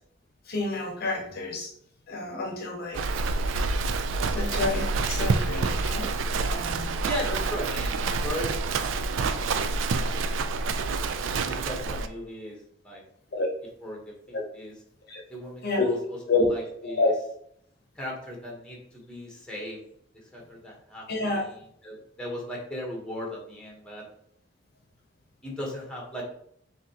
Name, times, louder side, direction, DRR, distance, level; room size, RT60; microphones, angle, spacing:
voice 1, 0.5-1.7 2.1-3.0 4.3-6.1 6.4-7.0 10.8-10.9 13.3-13.5 14.3-14.4 15.1-15.2 15.6-16.0 16.3-16.5 16.8-17.1 21.1-21.4, left 3 dB, 55° left, 1 dB, 0.7 m, -29 dB
Livestock farm animals working animals, 2.9-12.1, right 3 dB, 75° right, 0.4 m, -27 dB
voice 2, 7.0-8.5 9.2-9.8 11.3-13.0 13.8-14.7 15.3-17.1 17.9-19.8 20.1-24.1 25.4-26.2, left 1 dB, 5° left, -2 dB, 1.1 m, -37 dB
5.9 x 2.7 x 2.8 m, 0.67 s
head